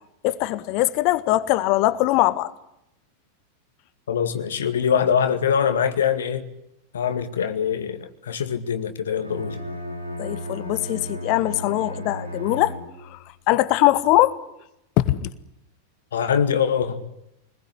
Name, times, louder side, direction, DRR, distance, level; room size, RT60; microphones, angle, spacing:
voice 1, 0.2-2.5 10.2-12.8 13.1-13.2 13.5-14.4 15.0-15.3, left 16 dB, 45° left, 1.5 m, -21 dB
voice 2, 4.1-6.5 6.9-9.6 16.1-17.0, left 7 dB, 65° left, 2.0 m, -23 dB
Bowed string instrument, 9.2-13.2, equal, 90° right, 4.5 m, -34 dB
26.0 x 21.0 x 9.9 m
figure-of-eight pair, 90°, 0 cm